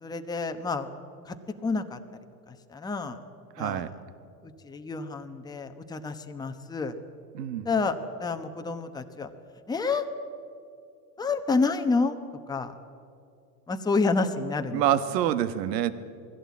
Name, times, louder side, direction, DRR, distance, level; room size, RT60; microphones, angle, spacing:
voice 1, 0.0-0.9 1.3-1.4 1.6-2.0 2.5-3.2 3.6-3.8 4.6-6.9 7.6-9.3 9.7-10.0 11.2-12.2 12.5-12.7 13.7-14.8, left 4 dB, 10° left, 7 dB, 1.0 m, -29 dB
voice 2, 3.5-3.9 7.3-7.7 14.7-15.9, right 11 dB, 75° right, 12 dB, 1.4 m, -26 dB
20.5 x 16.0 x 8.5 m, 2.5 s
hypercardioid pair, 115°, 49 cm